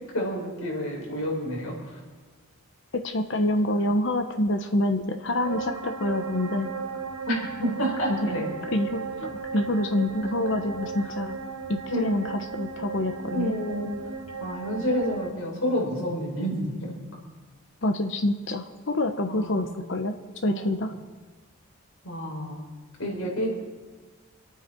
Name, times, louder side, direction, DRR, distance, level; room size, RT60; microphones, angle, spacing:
voice 1, 0.1-2.0 7.3-8.5 11.0-11.1 11.9-12.2 13.3-14.0 14.4-17.0 19.3-19.7 20.5-20.6 22.0-22.6 23.0-23.5, equal, 75° left, -2 dB, 5.0 m, -29 dB
voice 2, 2.9-6.7 8.1-8.2 8.7-11.4 11.7-13.5 17.8-20.2 20.4-20.9, left 1 dB, 60° left, 6 dB, 0.9 m, -27 dB
sound 1, 5.4-15.3, right 5 dB, 85° right, 1.0 m, -36 dB
27.0 x 9.0 x 4.5 m, 1.3 s
head